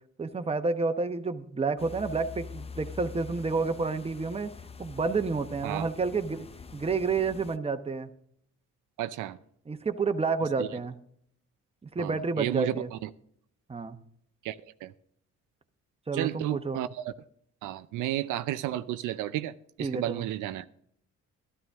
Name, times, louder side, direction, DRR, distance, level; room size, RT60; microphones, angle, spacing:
voice 1, 0.2-4.5 4.8-6.5 6.7-8.1 9.7-11.0 11.9-12.9 13.7-14.0 16.1-16.8 19.8-20.3, right 4 dB, 20° right, 1.0 m, -29 dB
sound 1, 1.8-7.6, left 5 dB, 20° left, 0.5 m, -45 dB
voice 2, 9.0-9.4 10.6-10.7 12.0-13.1 14.4-14.5 14.8-14.9 16.1-17.1 17.6-20.7, right 13 dB, 90° right, 0.6 m, -32 dB
12.5 x 12.5 x 3.5 m
cardioid pair, 90°, 30 cm